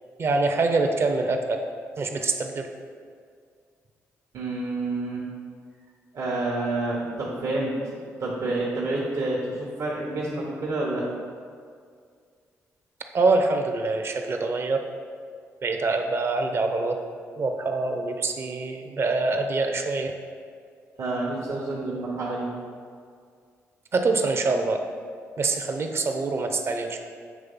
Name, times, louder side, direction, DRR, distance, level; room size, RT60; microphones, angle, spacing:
voice 1, 0.2-1.6 2.0-2.7 13.1-14.8 15.6-17.0 17.4-20.1 23.9-24.8 25.4-27.0, right 3 dB, 45° right, 4 dB, 0.7 m, -25 dB
voice 2, 4.3-5.2 6.1-11.0 21.0-22.5, right 2 dB, 70° right, -5 dB, 1.1 m, -28 dB
7.5 x 3.3 x 5.4 m, 2.1 s
cardioid pair, 75°, 6 cm